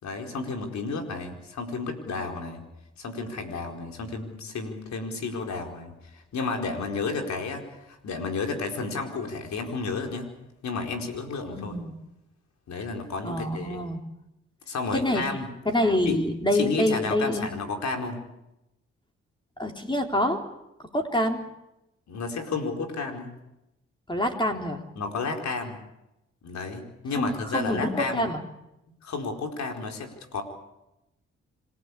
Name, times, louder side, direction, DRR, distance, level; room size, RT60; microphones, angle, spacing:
voice 1, 0.0-2.6 3.0-10.3 10.6-11.8 12.7-13.8 14.7-15.5 16.1-16.2 16.5-18.2 22.1-23.3 25.0-25.8 26.4-28.3 28.9-30.4, left 4 dB, 70° left, 3 dB, 4.6 m, -32 dB
voice 2, 11.6-12.0 13.2-14.0 14.9-15.2 15.7-17.5 19.6-20.4 20.9-21.4 24.1-24.8 27.2-28.4, left 1 dB, 15° left, 3 dB, 3.8 m, -26 dB
27.0 x 16.5 x 8.5 m, 0.89 s
supercardioid pair, 55°, 29 cm